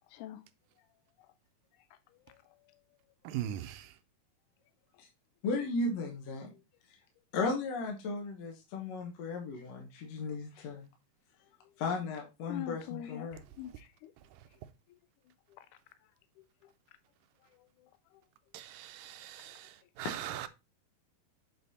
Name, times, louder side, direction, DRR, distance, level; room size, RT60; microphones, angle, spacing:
voice 1, 0.1-0.4 2.3-2.4 6.5-6.6 12.5-13.3 13.6-14.1 15.5-15.7 16.4-16.5 17.8-18.2, left 11 dB, 80° left, 1.8 m, -44 dB
voice 2, 3.2-4.0 14.3-14.4 18.5-20.5, right 12 dB, 80° right, 2.2 m, -41 dB
voice 3, 5.4-6.5 7.3-10.9 11.8-13.4, left 3 dB, 60° left, 2.0 m, -35 dB
8.2 x 4.1 x 4.1 m
omnidirectional pair, 4.0 m